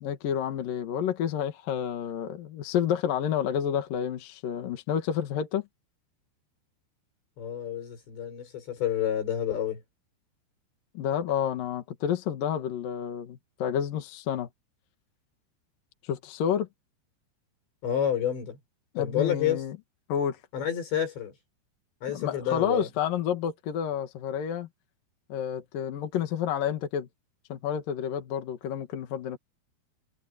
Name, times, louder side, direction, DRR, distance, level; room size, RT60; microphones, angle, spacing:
voice 1, 0.0-5.6 10.9-14.5 16.0-16.7 18.9-19.8 20.1-20.4 22.1-24.7 25.3-27.1 27.5-29.4, left 9 dB, 60° left, 3.0 m, -30 dB
voice 2, 7.4-9.8 17.8-18.6 19.0-19.6 20.5-21.3 22.0-22.9, left 10 dB, 75° left, 8.7 m, -29 dB
omnidirectional pair, 5.1 m